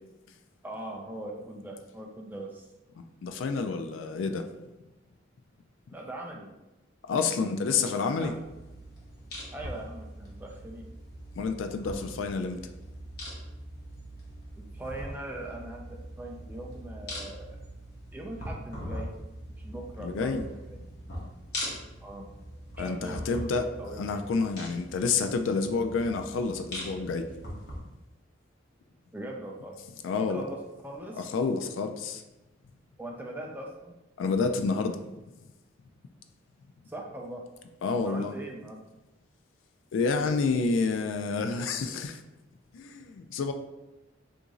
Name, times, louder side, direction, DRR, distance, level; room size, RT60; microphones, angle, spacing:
voice 1, 0.6-2.7 5.9-6.5 7.1-7.3 7.7-8.4 9.5-10.9 14.6-17.6 18.1-19.1 19.6-20.8 22.0-22.3 22.8-23.4 23.8-24.3 29.1-29.8 30.3-31.3 33.0-34.0 36.9-37.4 38.0-38.8, right 1 dB, 10° right, 0 dB, 0.4 m, -41 dB
voice 2, 3.0-4.5 7.1-8.3 11.4-12.6 20.0-20.4 22.8-27.3 30.0-30.4 31.2-32.2 34.2-35.1 37.8-38.3 39.9-42.2 42.7-43.5, left 4 dB, 75° left, 7 dB, 0.3 m, -29 dB
sound 1, 8.2-27.8, equal, 55° left, 1.1 m, -42 dB
2.9 x 2.6 x 3.7 m, 1.0 s
head